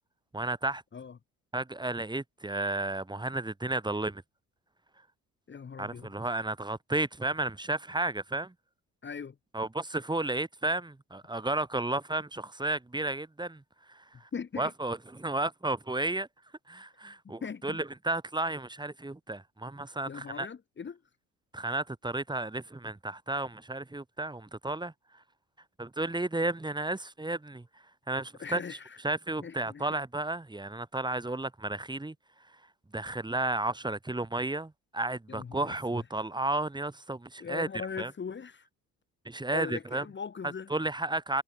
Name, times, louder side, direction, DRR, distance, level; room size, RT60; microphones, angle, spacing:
voice 1, 0.3-0.8 1.5-4.2 5.8-8.5 9.5-13.6 13.9-14.3 14.6-16.3 16.7-20.5 21.5-24.9 25.8-27.7 28.1-28.8 29.0-32.1 32.9-37.7 38.0-38.1 39.2-40.0 40.7-41.4, right 2 dB, 10° right, 3.5 m, -33 dB
voice 2, 5.5-6.1 9.0-9.3 14.3-14.7 17.2-17.8 20.1-21.0 28.4-29.0 29.4-29.8 35.3-36.0 37.4-38.7 39.5-40.7, left 6 dB, 25° left, 2.3 m, -40 dB
figure-of-eight pair, 55°, 42 cm